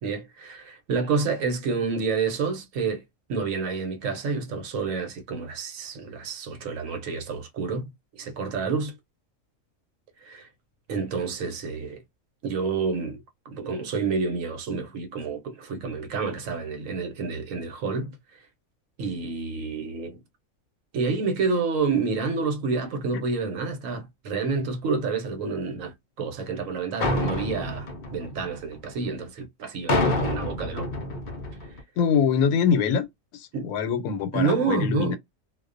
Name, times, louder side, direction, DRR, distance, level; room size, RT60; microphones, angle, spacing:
voice 1, 0.0-3.0 3.3-8.9 10.2-10.5 10.9-12.0 12.4-18.1 19.0-20.2 20.9-30.9 33.5-33.7 34.3-35.2, right 4 dB, 75° right, 1.0 m, -29 dB
sound 1, 27.0-29.0 29.9-31.8, left 1 dB, 55° left, 0.5 m, -27 dB
voice 2, 32.0-33.1 33.3-35.2, left 7 dB, 85° left, 1.0 m, -24 dB
2.4 x 2.1 x 2.4 m
omnidirectional pair, 1.4 m